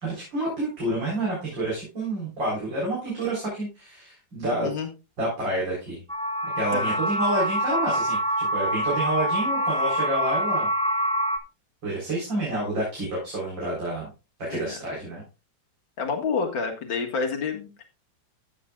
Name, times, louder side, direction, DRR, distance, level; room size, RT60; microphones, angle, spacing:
voice 1, 0.0-4.7 5.2-6.0 6.5-10.7 11.8-14.1 14.4-15.2, right 1 dB, 75° right, -5 dB, 4.9 m, -29 dB
sound 1, 6.1-11.4, equal, 5° left, 0.5 m, -25 dB
voice 2, 16.0-17.8, left 5 dB, 85° left, 3 dB, 2.6 m, -29 dB
14.5 x 7.6 x 2.4 m, 0.30 s
omnidirectional pair, 2.0 m